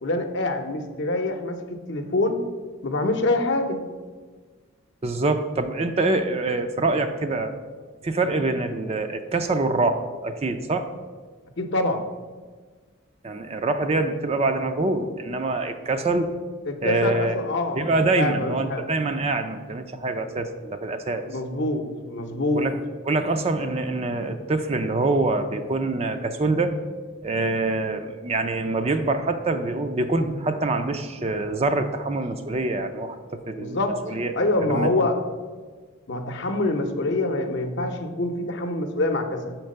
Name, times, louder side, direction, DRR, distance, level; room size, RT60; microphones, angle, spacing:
voice 1, 0.0-2.4 2.8-3.8 11.6-12.0 16.7-18.9 21.3-22.7 33.6-34.0 34.4-35.2 36.1-39.6, left 2 dB, 55° left, 6 dB, 0.7 m, -25 dB
voice 2, 5.0-7.5 8.0-10.9 13.2-16.3 16.8-17.4 17.8-21.2 22.5-22.8 23.1-26.8 27.2-33.8 34.0-34.3 34.7-34.9, right 2 dB, 30° right, 8 dB, 0.4 m, -25 dB
5.9 x 4.5 x 6.4 m, 1.5 s
head